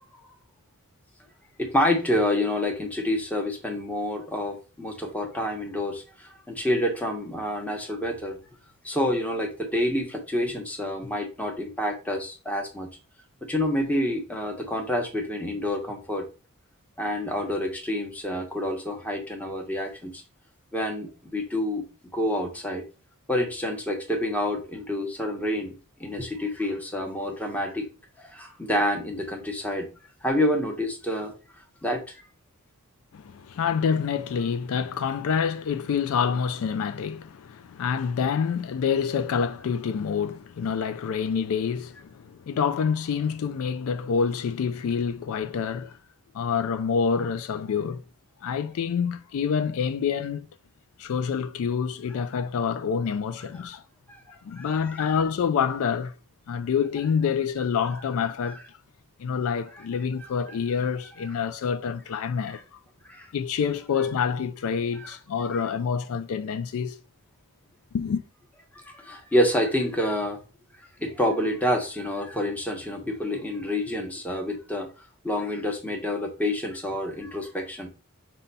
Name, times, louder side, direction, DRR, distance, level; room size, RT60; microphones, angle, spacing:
voice 1, 1.6-8.4 8.8-12.9 13.5-16.3 17.0-20.2 20.7-21.9 22.1-22.8 23.3-27.9 28.2-29.9 30.2-31.3 31.8-32.2 54.1-54.2 54.6-54.7 60.5-60.6 62.5-62.6 63.1-63.3 65.0-65.1 68.9-70.4 71.0-74.9 75.2-77.9, left 1 dB, 5° left, 0.8 m, -28 dB
voice 2, 33.1-46.0 46.3-48.0 48.4-50.5 51.0-53.8 54.3-56.1 56.5-58.8 59.2-62.8 63.3-67.0 67.9-68.2, left 6 dB, 65° left, 0.3 m, -27 dB
5.3 x 2.2 x 4.0 m
head